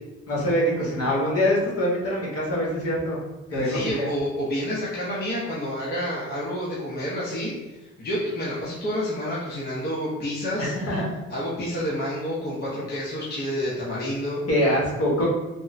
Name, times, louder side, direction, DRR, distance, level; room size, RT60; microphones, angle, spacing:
voice 1, 0.3-3.2 3.5-4.1 10.6-11.0 14.5-15.3, equal, 50° left, -5 dB, 1.2 m, -24 dB
voice 2, 3.5-10.7 11.3-14.4, equal, 35° left, -7 dB, 0.8 m, -29 dB
3.5 x 2.0 x 2.6 m, 1.1 s
cardioid pair, 90°, 30 cm